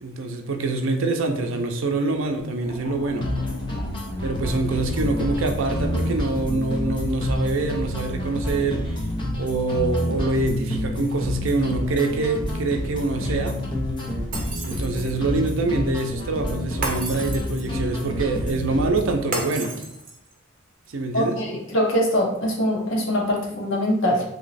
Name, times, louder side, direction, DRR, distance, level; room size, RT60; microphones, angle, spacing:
voice 1, 0.0-3.3 4.2-8.8 9.4-13.6 14.6-19.7 20.9-21.4, right 3 dB, 75° right, 4 dB, 0.5 m, -25 dB
sound 1, 2.6-9.5, left 1 dB, 90° left, 0.8 m, -36 dB
sound 2, 3.2-19.2, left 1 dB, 25° left, 0.6 m, -28 dB
Shatter, 14.3-15.3 16.8-17.8 19.3-20.3, right 2 dB, 40° right, 0.7 m, -32 dB
voice 2, 21.1-24.2, equal, 70° left, -2 dB, 1.0 m, -23 dB
3.0 x 2.8 x 4.1 m, 0.76 s
head